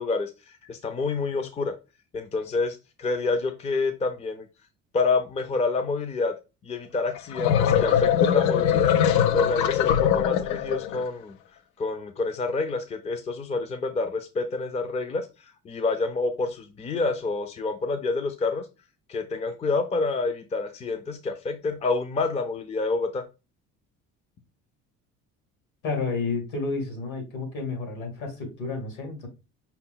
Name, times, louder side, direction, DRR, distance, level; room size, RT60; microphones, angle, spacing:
voice 1, 0.0-1.7 2.1-4.5 4.9-6.3 6.6-9.0 9.3-11.4 11.8-15.3 15.6-18.7 19.1-23.2, left 3 dB, 20° left, 0.4 m, -28 dB
sound 1, 7.2-11.0, left 9 dB, 90° left, 0.6 m, -22 dB
voice 2, 25.8-29.3, left 4 dB, 75° left, 2.5 m, -31 dB
5.6 x 2.2 x 3.7 m
cardioid pair, 135°, 30 cm